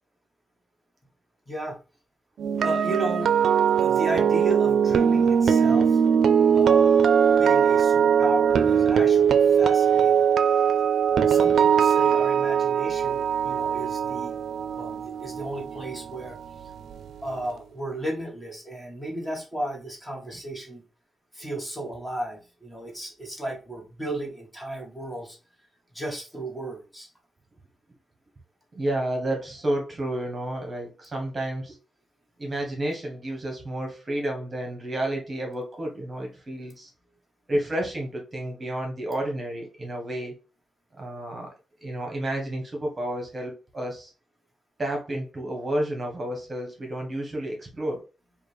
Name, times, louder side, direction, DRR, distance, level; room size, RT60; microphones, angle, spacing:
voice 1, 1.5-1.8 2.6-3.3 3.8-6.0 6.5-6.9 7.4-10.3 11.1-14.4 14.7-16.4 17.2-20.8 21.3-25.4 25.9-27.1, right 1 dB, 15° left, 0 dB, 1.4 m, -34 dB
sound 1, 2.4-16.5 16.7-17.0, right 7 dB, 75° right, 0.4 m, -21 dB
voice 2, 28.7-31.8 32.4-36.9 37.5-40.3 41.0-41.5 41.8-44.1 44.8-48.0, right 1 dB, 30° right, 1 dB, 1.2 m, -31 dB
4.9 x 2.4 x 3.2 m, 0.33 s
cardioid pair, 100°, 0 cm